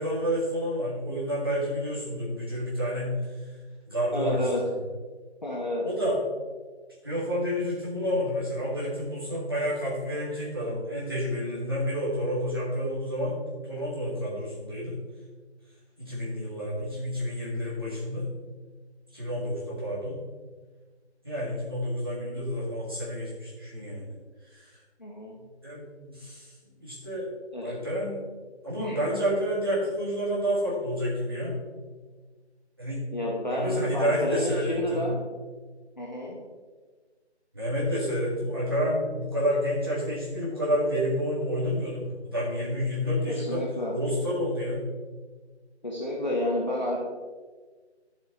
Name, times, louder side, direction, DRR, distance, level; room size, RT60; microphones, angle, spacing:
voice 1, 0.0-3.2 3.9-4.7 5.8-6.2 7.0-15.0 16.0-18.2 19.1-20.2 21.2-24.1 24.5-24.7 25.6-26.5 26.8-27.3 27.6-28.2 28.6-31.5 32.8-33.0 33.5-35.1 37.5-43.6 43.9-44.9, equal, 20° right, -8 dB, 1.8 m, -29 dB
voice 2, 4.1-4.6 5.4-5.8 25.0-25.3 27.5-27.7 28.8-29.0 33.1-35.2 36.0-36.4 43.3-43.9 45.8-47.0, left 1 dB, 40° left, -3 dB, 1.1 m, -30 dB
11.0 x 7.1 x 3.0 m, 1.4 s
figure-of-eight pair, 180°, 34 cm